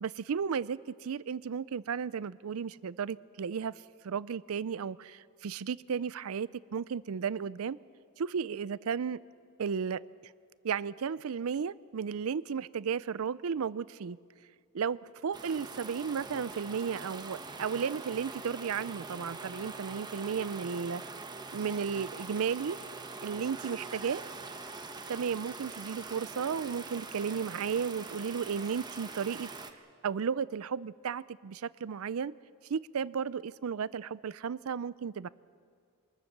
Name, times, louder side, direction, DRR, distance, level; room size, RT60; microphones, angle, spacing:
voice 1, 0.0-7.8 8.2-9.2 9.6-10.0 10.6-14.2 14.7-21.0 21.5-22.8 23.2-24.2 25.1-29.5 30.0-32.3 32.7-35.3, right 6 dB, 80° right, 19 dB, 0.5 m, -34 dB
sound 1, 15.3-29.7, right 3 dB, 20° right, 1.0 m, -43 dB
24.0 x 20.0 x 6.7 m, 2.1 s
head